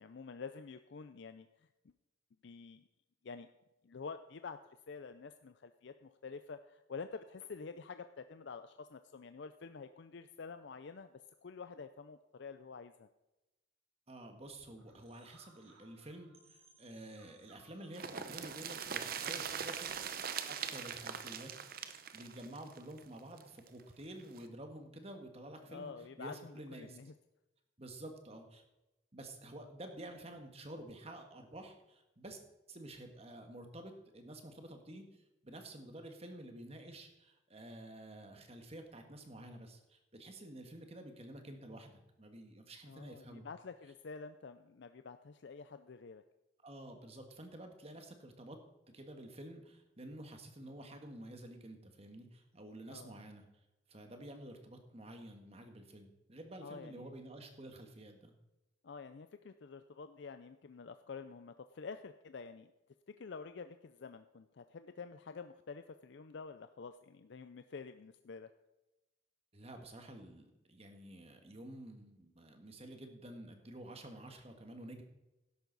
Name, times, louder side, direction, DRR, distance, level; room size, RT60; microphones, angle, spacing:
voice 1, 0.0-1.5 1.8-1.9 2.4-2.9 3.2-3.5 3.8-4.6 4.9-13.1 25.7-27.1 42.9-46.2 52.9-53.2 56.6-57.1 58.8-62.7 63.1-68.5, left 5 dB, 60° left, 10 dB, 0.5 m, -48 dB
voice 2, 14.1-21.5 22.1-25.9 26.2-27.0 27.8-28.6 29.1-32.4 32.7-43.5 46.6-48.6 48.9-53.4 53.9-58.3 69.5-75.0, right 1 dB, 30° right, 5 dB, 1.5 m, -50 dB
sound 1, 14.6-20.2, right 2 dB, 85° right, 3.9 m, -67 dB
sound 2, 17.9-23.7 24.0-24.1 24.4-24.5, right 7 dB, 45° right, 0.7 m, -41 dB
12.5 x 10.5 x 4.0 m, 1.0 s
head